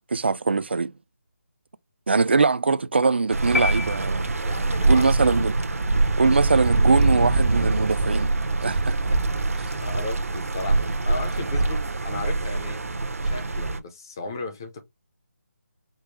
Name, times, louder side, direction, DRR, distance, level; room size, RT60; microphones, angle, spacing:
voice 1, 0.1-0.9 2.1-4.4 4.8-5.5 6.2-8.3 8.6-9.1 9.6-9.7, right 4 dB, 45° right, 0.4 m, -22 dB
sound 1, 3.3-13.8, right 2 dB, 65° right, 0.8 m, -24 dB
sound 2, 3.5-4.8, left 4 dB, 65° left, 0.4 m, -29 dB
voice 2, 4.4-5.4 9.1-9.2 9.8-12.8 13.2-14.8, left 3 dB, 15° left, 0.6 m, -35 dB
5.1 x 2.0 x 4.5 m
figure-of-eight pair, 175°, 8 cm